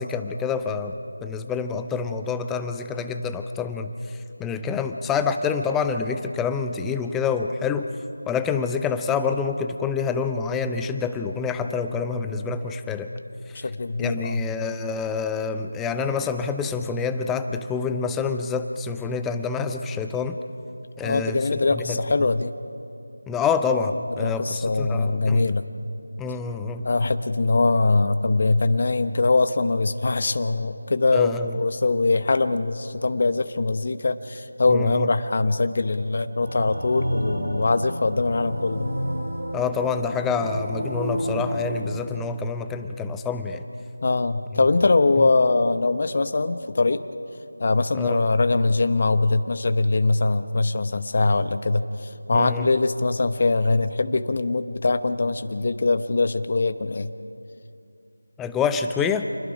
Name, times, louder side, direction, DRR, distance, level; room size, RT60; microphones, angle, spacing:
voice 1, 0.0-7.9 8.3-13.1 14.0-20.4 21.0-22.0 23.3-25.5 26.2-26.9 31.1-31.5 34.7-35.1 39.5-43.6 45.2-45.3 47.9-48.3 52.3-52.7 58.4-59.3, left 5 dB, 5° left, 8 dB, 0.5 m, -27 dB
voice 2, 13.6-14.5 21.0-22.5 24.2-25.6 26.8-38.9 44.0-47.0 47.6-57.1, left 3 dB, 40° left, 10 dB, 0.8 m, -22 dB
sound 1, 36.4-41.7, equal, 85° right, 7.3 m, -30 dB
28.0 x 21.0 x 5.1 m, 2.7 s
figure-of-eight pair, 170°, 0 cm